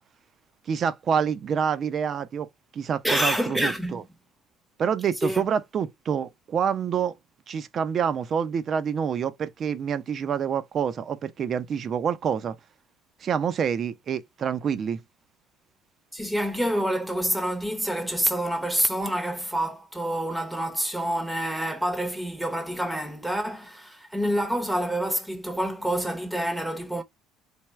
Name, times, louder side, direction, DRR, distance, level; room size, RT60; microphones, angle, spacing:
voice 1, 0.7-2.5 2.7-4.0 4.8-7.2 7.5-12.6 13.2-15.0, right 7 dB, 45° right, 0.5 m, -27 dB
voice 2, 3.0-4.0 5.2-5.4 16.1-27.0, equal, 5° right, 0.8 m, -27 dB
3.4 x 2.3 x 3.1 m
hypercardioid pair, 75°, 0 cm